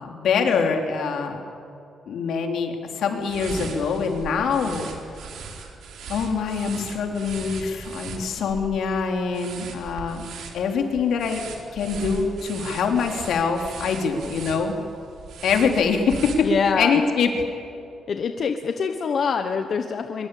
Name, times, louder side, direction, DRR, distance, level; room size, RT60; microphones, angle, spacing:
voice 1, 0.0-1.4 2.1-4.8 6.1-10.3 10.5-11.4 11.7-14.8 15.4-16.5 16.7-17.3, left 5 dB, 75° left, 3 dB, 3.4 m, -24 dB
sound 1, 3.2-16.9, right 5 dB, 75° right, 4.2 m, -38 dB
voice 2, 16.4-17.0 18.1-20.3, left 6 dB, 45° left, 6 dB, 1.1 m, -24 dB
24.0 x 23.0 x 8.5 m, 2.7 s
wide cardioid pair, 170°, 0 cm